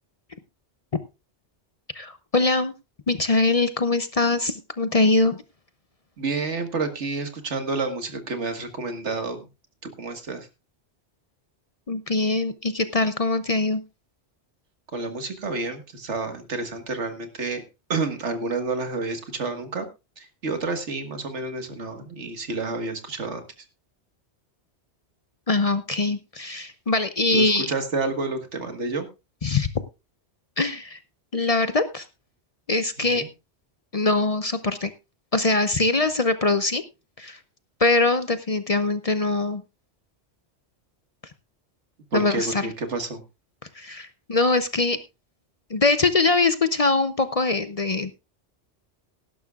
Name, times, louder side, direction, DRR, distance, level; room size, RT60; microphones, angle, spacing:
voice 1, 1.9-2.7 3.1-5.4 11.9-13.8 25.5-27.7 29.4-29.7 30.6-31.0 31.3-32.0 32.7-33.2 33.9-34.9 35.3-36.8 37.2-37.4 37.8-39.6 42.1-42.7 43.7-45.0 45.7-48.1, left 3 dB, 40° left, 11 dB, 0.6 m, -22 dB
voice 2, 6.2-9.5 10.0-10.5 14.9-17.6 17.9-19.9 20.2-23.5 27.3-29.1 33.0-33.3 42.1-43.2, right 3 dB, 85° right, 8 dB, 1.9 m, -29 dB
18.0 x 11.0 x 2.4 m, 0.26 s
omnidirectional pair, 1.2 m